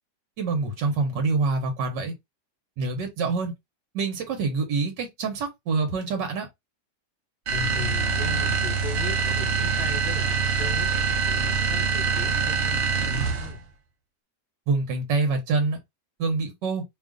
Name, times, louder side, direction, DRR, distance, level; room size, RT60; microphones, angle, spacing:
voice 1, 0.4-2.1 2.8-3.5 3.9-6.5 14.7-15.8 16.2-16.8, right 4 dB, 80° right, 1.8 m, -26 dB
voice 2, 7.5-10.9 11.2-13.6, left 5 dB, 40° left, 1.5 m, -37 dB
sound 1, 7.5-13.6, right 5 dB, 55° right, 0.8 m, -25 dB
3.5 x 2.5 x 3.6 m
omnidirectional pair, 1.9 m